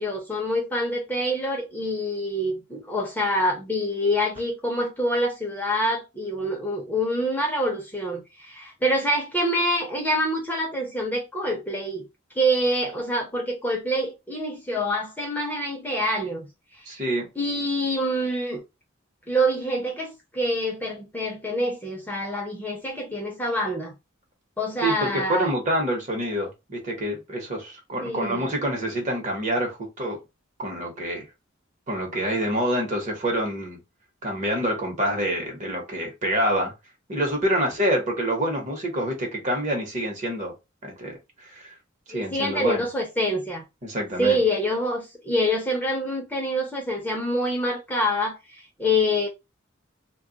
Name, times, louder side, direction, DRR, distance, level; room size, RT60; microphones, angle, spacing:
voice 1, 0.0-12.0 12.3-16.5 17.4-18.6 19.3-23.9 24.6-25.5 28.0-28.5 42.1-43.6 44.2-49.3, equal, 10° left, 0.6 m, -26 dB
voice 2, 16.9-17.3 24.8-30.2 30.6-31.2 31.9-33.8 34.2-36.7 37.1-40.5 40.8-41.7 42.1-42.9 43.8-44.4, right 1 dB, 40° right, 1.0 m, -27 dB
2.3 x 2.1 x 3.8 m
head